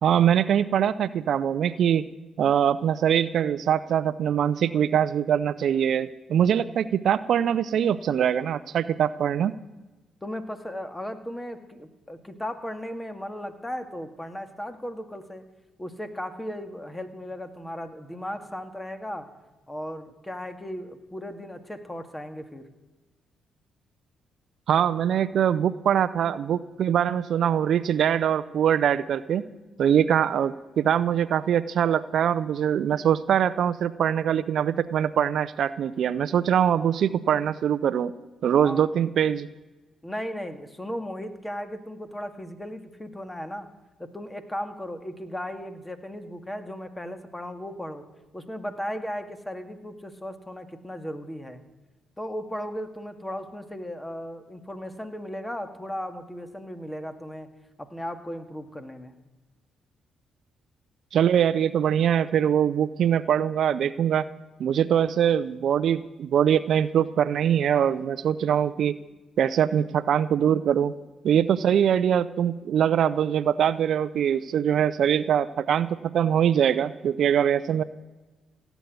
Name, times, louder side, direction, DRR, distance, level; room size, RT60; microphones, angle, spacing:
voice 1, 0.0-2.0 2.4-9.5 24.7-29.4 29.8-38.1 38.4-39.5 61.1-64.3 64.6-69.0 69.4-70.9 71.2-77.8, right 9 dB, 65° right, 16 dB, 0.5 m, -23 dB
voice 2, 10.2-15.4 15.8-19.3 19.7-22.7 38.5-38.9 40.0-43.7 44.0-48.1 48.3-51.6 52.2-57.5 57.8-59.1, equal, 15° left, 8 dB, 2.0 m, -36 dB
16.5 x 8.3 x 9.4 m, 1.2 s
supercardioid pair, 55°, 0 cm